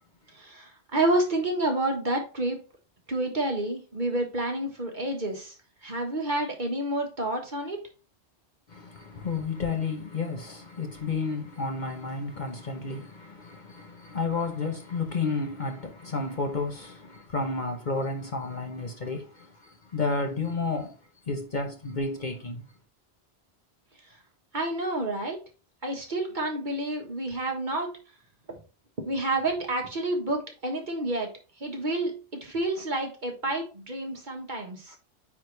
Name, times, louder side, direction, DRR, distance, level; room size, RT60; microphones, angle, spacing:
voice 1, 0.3-2.6 3.1-5.5 5.8-7.8 24.5-25.4 25.8-28.0 28.5-28.6 29.0-31.3 31.6-35.0, right 2 dB, 45° right, 1.5 m, -29 dB
voice 2, 8.7-19.5 19.9-20.9 21.3-22.6 34.9-35.0, left 4 dB, 45° left, 1.0 m, -31 dB
9.1 x 3.6 x 3.2 m
omnidirectional pair, 1.2 m